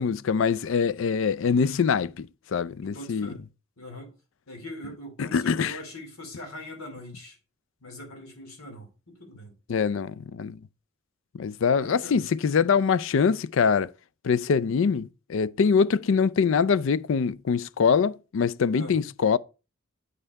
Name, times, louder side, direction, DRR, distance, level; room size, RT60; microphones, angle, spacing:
voice 1, 0.0-3.3 5.2-5.8 9.7-10.6 11.3-13.9 14.2-19.4, left 6 dB, 60° left, 0.4 m, -24 dB
voice 2, 2.8-3.4 3.8-4.1 4.5-7.4 7.8-9.5 11.8-12.3 18.7-19.0, left 1 dB, 85° left, 3.0 m, -42 dB
8.1 x 5.5 x 4.6 m
head